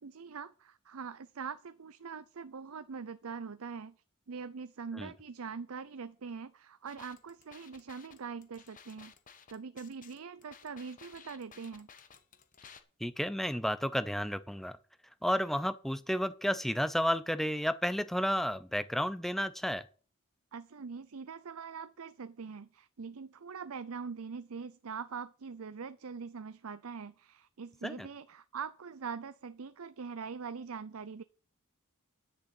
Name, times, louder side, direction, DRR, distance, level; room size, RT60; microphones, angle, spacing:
voice 1, 0.0-4.0 4.3-9.1 9.5-11.9 20.5-31.2, right 5 dB, 75° right, 0.6 m, -43 dB
sound 1, 6.9-12.8, left 6 dB, 35° left, 1.2 m, -56 dB
voice 2, 13.0-14.8 15.2-19.9 27.8-28.1, equal, ahead, 0.6 m, -32 dB
10.5 x 6.8 x 7.7 m
head